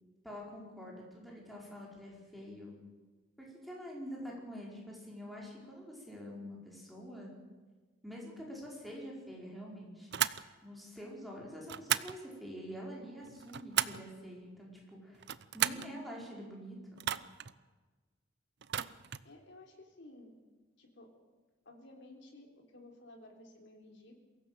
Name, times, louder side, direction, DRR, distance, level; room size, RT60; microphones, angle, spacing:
voice 1, 0.2-2.7 3.4-7.3 8.0-10.1 10.6-17.0, equal, ahead, -3 dB, 5.1 m, -46 dB
sound 1, 10.1-10.4 11.7-12.2 13.2-14.1 15.1-15.9 17.0-17.5 18.6-19.3, right 11 dB, 60° right, 0.7 m, -34 dB
voice 2, 19.2-20.3 20.8-21.1 21.7-24.2, left 2 dB, 65° left, 2 dB, 3.6 m, -55 dB
23.0 x 16.0 x 7.9 m, 1.3 s
head